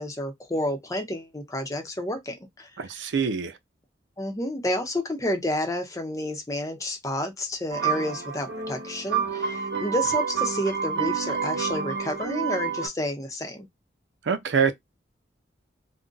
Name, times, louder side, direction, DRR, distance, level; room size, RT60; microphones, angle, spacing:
voice 1, 0.0-2.7 4.2-13.7, left 1 dB, 20° left, 0.7 m, -30 dB
voice 2, 2.8-3.6 14.2-14.7, right 6 dB, 90° right, 0.5 m, -25 dB
sound 1, 7.7-12.9, right 7 dB, 65° right, 1.0 m, -28 dB
2.5 x 2.1 x 3.8 m
head